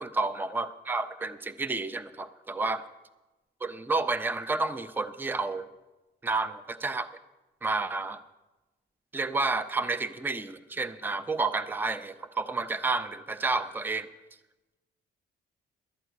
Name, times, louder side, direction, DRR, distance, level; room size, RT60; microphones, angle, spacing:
voice 1, 0.0-2.8 3.6-5.7 6.2-7.1 7.6-8.2 9.1-14.1, right 3 dB, 10° right, 10 dB, 0.6 m, -30 dB
12.5 x 8.3 x 7.8 m, 1.1 s
cardioid pair, 90°, 20 cm